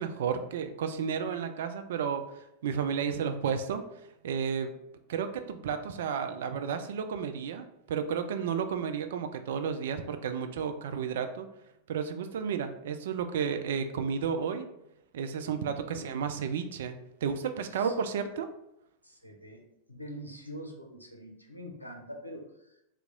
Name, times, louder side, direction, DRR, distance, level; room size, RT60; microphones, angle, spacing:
voice 1, 0.0-3.8 4.2-4.7 5.1-11.5 11.9-14.7 15.1-18.5, right 7 dB, 60° right, 8 dB, 0.3 m, -32 dB
voice 2, 15.9-16.2 17.7-17.9 19.0-19.6 19.9-22.8, equal, 90° left, 2 dB, 0.5 m, -44 dB
2.9 x 2.3 x 3.6 m, 0.82 s
figure-of-eight pair, 90°, 0 cm